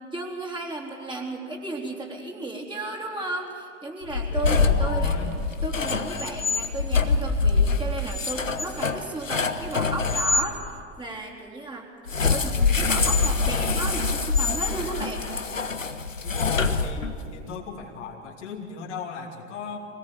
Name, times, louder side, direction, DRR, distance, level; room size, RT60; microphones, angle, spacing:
voice 1, 0.1-5.2 5.6-11.9 12.3-15.3, right 2 dB, 10° right, -1 dB, 3.6 m, -34 dB
sound 1, 4.1-10.5 12.1-17.3, left 4 dB, 90° left, 1.0 m, -24 dB
voice 2, 4.3-5.4 12.3-12.4 12.8-12.9 13.4-14.7 15.8-15.9 16.2-19.8, left 5 dB, 65° left, 0 dB, 2.9 m, -38 dB
24.5 x 18.0 x 7.3 m, 2.2 s
figure-of-eight pair, 75°, 38 cm